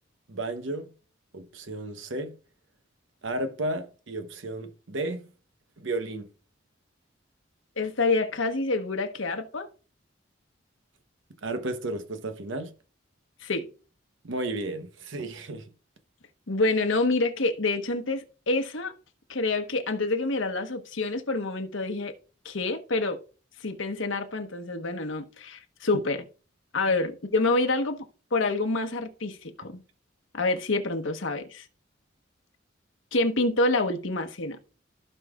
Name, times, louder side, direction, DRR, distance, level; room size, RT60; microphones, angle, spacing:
voice 1, 0.3-0.9 1.3-2.3 3.2-5.3 5.8-6.3 11.4-12.7 14.2-15.7, right 2 dB, 80° right, 0.9 m, -33 dB
voice 2, 7.8-9.7 13.4-13.7 16.5-18.9 19.3-22.1 22.4-23.2 23.6-26.2 26.7-28.0 28.3-29.8 30.3-31.6 33.1-34.6, left 2 dB, 85° left, 1.2 m, -27 dB
15.0 x 5.5 x 2.4 m
head